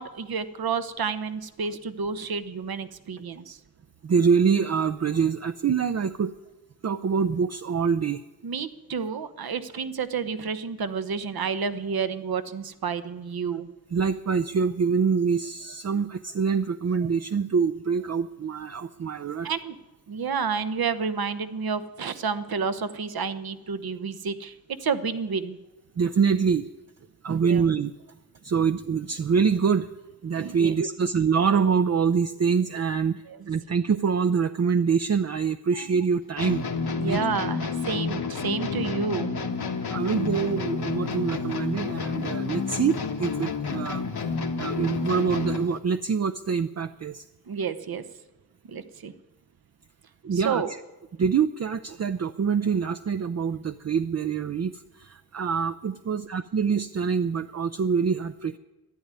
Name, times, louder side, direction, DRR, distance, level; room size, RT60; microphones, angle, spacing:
voice 1, 0.0-3.6 8.4-13.7 19.4-19.7 20.1-24.5 24.8-25.6 27.3-27.6 30.4-30.7 33.3-33.5 35.8-35.9 36.9-39.3 47.5-48.0 48.7-49.1 50.3-50.7, right 5 dB, 70° right, 12 dB, 1.0 m, -30 dB
voice 2, 4.0-6.3 6.8-8.2 13.9-19.5 26.0-26.7 27.2-27.9 28.4-29.9 30.2-36.6 37.0-37.2 39.9-44.3 44.6-47.2 50.2-50.6 51.2-58.6, right 6 dB, 45° right, 9 dB, 0.5 m, -25 dB
sound 1, 36.4-45.8, left 4 dB, 80° left, 1.6 m, -30 dB
12.5 x 11.0 x 9.7 m, 1.1 s
wide cardioid pair, 80°, 37 cm